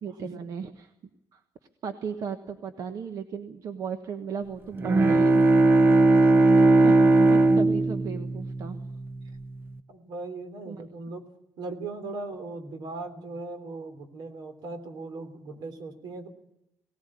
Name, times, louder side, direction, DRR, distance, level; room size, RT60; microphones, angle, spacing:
voice 1, 0.0-0.9 1.3-1.4 1.8-5.8 6.8-6.9 7.2-8.8 10.6-10.9, right 6 dB, 55° right, 7 dB, 1.3 m, -35 dB
Bowed string instrument, 4.7-9.3, right 2 dB, 30° right, 0.8 m, -19 dB
voice 2, 9.9-11.2 11.6-16.3, right 3 dB, 75° right, 8 dB, 3.3 m, -38 dB
19.0 x 18.5 x 8.6 m, 0.83 s
cardioid pair, 175°, 7 cm